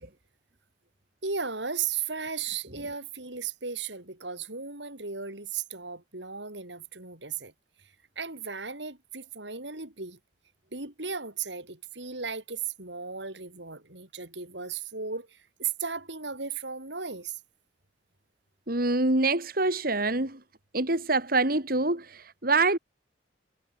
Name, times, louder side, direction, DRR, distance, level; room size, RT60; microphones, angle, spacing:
voice 1, 1.2-7.5 8.2-10.2 10.7-15.3 15.6-17.4, right 6 dB, 80° right, 6.1 m, -35 dB
voice 2, 18.7-20.4 20.7-22.8, right 2 dB, 55° right, 3.7 m, -25 dB
head